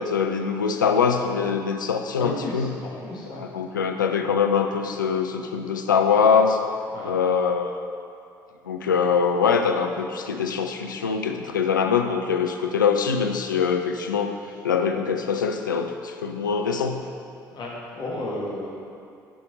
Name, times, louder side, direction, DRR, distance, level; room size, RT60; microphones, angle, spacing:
voice 1, 0.0-2.7 3.3-6.6 7.0-7.8 8.7-14.3 14.6-17.0, left 6 dB, 85° left, 6 dB, 0.4 m, -23 dB
voice 2, 2.2-3.5 6.9-7.1 17.5-18.7, left 2 dB, 45° left, -4 dB, 1.8 m, -33 dB
7.7 x 5.7 x 3.8 m, 2.5 s
figure-of-eight pair, 55°, 10 cm